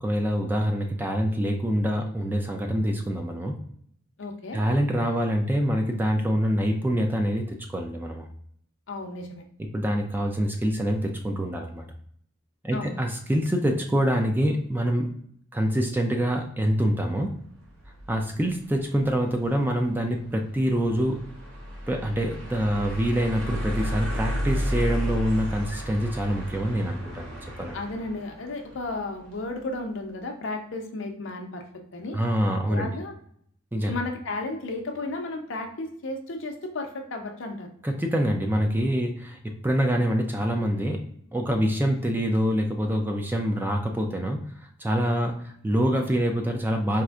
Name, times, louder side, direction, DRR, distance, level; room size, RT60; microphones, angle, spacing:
voice 1, 0.0-3.5 4.5-8.2 9.6-11.8 12.6-15.2 15.5-17.3 18.1-21.2 21.9-27.8 32.1-32.9 33.7-34.0 37.8-41.0 41.3-47.0, equal, 10° right, 3 dB, 0.3 m, -25 dB
voice 2, 4.2-4.6 8.9-9.4 12.7-13.0 27.7-31.6 31.9-32.2 32.7-33.1 33.9-37.7, left 2 dB, 65° left, 4 dB, 0.6 m, -33 dB
sound 1, 17.5-29.7, equal, 85° right, 0.9 m, -34 dB
4.2 x 2.5 x 2.4 m, 0.65 s
head